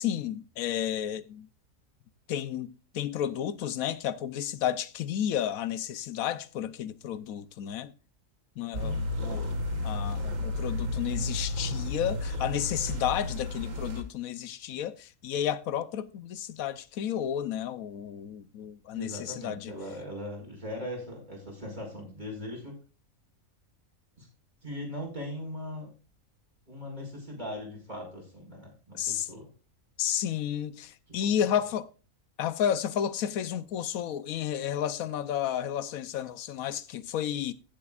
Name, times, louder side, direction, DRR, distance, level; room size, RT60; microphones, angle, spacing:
voice 1, 0.0-1.5 2.3-7.9 8.6-9.6 9.8-19.7 29.0-29.3 30.0-31.9 32.4-37.5, left 10 dB, 90° left, 1.2 m, -32 dB
sound 1, 8.7-14.0, left 2 dB, 70° right, 2.1 m, -32 dB
voice 2, 8.8-9.1 18.9-22.7 24.2-24.3 24.6-25.9 26.7-29.5 31.2-31.3, left 1 dB, 30° right, 5.4 m, -39 dB
15.5 x 7.7 x 2.4 m
omnidirectional pair, 1.4 m